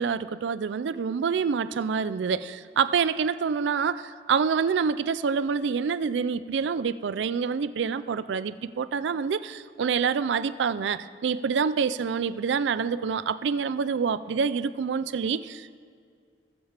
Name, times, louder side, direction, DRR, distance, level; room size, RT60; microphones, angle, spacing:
voice 1, 0.0-15.8, right 6 dB, 85° right, 14 dB, 0.4 m, -27 dB
20.0 x 7.2 x 3.3 m, 2.2 s
head